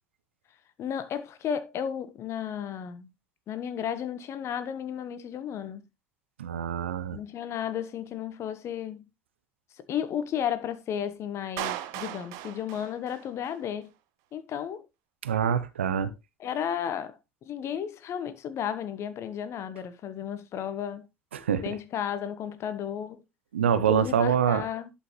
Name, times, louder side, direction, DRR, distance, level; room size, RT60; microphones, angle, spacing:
voice 1, 0.8-3.1 3.5-5.8 7.1-9.0 9.9-13.9 14.3-14.8 16.4-21.1 21.6-23.2 23.9-24.9, left 9 dB, 45° left, 1.2 m, -33 dB
voice 2, 6.4-7.2 15.2-16.1 21.3-21.8 23.5-24.6, right 8 dB, 85° right, 0.7 m, -25 dB
Clapping, 11.6-13.6, right 13 dB, 65° right, 1.0 m, -37 dB
11.0 x 5.7 x 3.1 m
hypercardioid pair, 70°, 6 cm